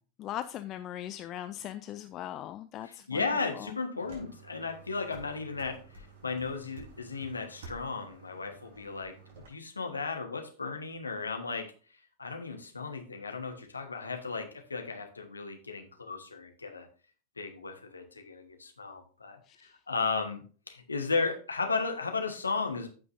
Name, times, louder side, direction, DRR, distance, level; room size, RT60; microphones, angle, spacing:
voice 1, 0.2-3.3 3.6-3.8 19.5-19.7, left 12 dB, 35° left, 0.4 m, -39 dB
voice 2, 2.8-11.7 12.2-16.9 17.4-22.9, left 4 dB, 80° left, 1.4 m, -35 dB
sound 1, 4.0-9.5, right 3 dB, 55° right, 3.8 m, -51 dB
14.5 x 5.5 x 2.7 m
figure-of-eight pair, 90°, 0 cm